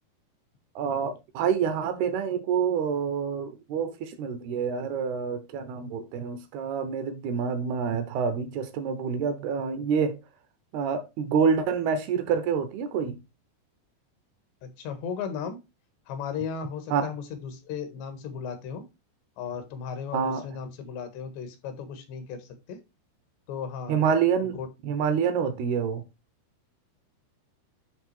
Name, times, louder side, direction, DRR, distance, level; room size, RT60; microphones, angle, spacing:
voice 1, 0.8-10.2 10.7-13.2 16.9-17.0 20.1-20.4 23.9-24.6 24.8-26.0, right 6 dB, 75° right, 2.8 m, -27 dB
voice 2, 14.6-15.6 16.1-18.9 19.4-22.8 23.5-24.0 24.4-24.7, left 7 dB, 85° left, 3.6 m, -36 dB
10.5 x 3.6 x 4.6 m
omnidirectional pair, 4.9 m